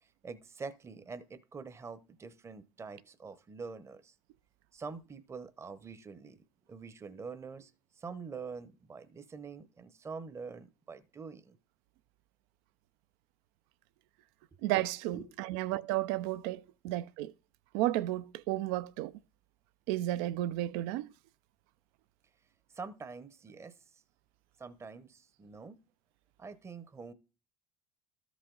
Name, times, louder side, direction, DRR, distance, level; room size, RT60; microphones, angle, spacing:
voice 1, 0.0-4.1 4.7-11.6 15.1-15.6 22.7-24.0 24.6-25.8 26.4-27.1, right 5 dB, 25° right, 0.8 m, -45 dB
voice 2, 14.6-17.3 17.7-19.1 19.9-21.1, right 15 dB, 75° right, 0.4 m, -33 dB
13.0 x 4.9 x 3.8 m
supercardioid pair, 90°, 12 cm